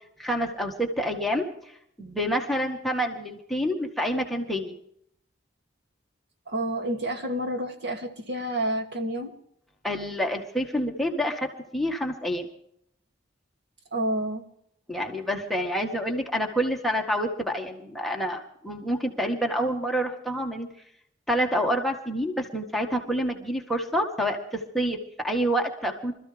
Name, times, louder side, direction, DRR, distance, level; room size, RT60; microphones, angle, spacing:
voice 1, 0.2-1.5 2.0-4.7 9.8-12.5 14.9-20.7 21.3-26.1, equal, ahead, 1 dB, 1.7 m, -28 dB
voice 2, 6.5-9.3 13.9-14.4, right 1 dB, 60° right, 2 dB, 2.6 m, -29 dB
25.5 x 14.0 x 3.5 m, 0.70 s
head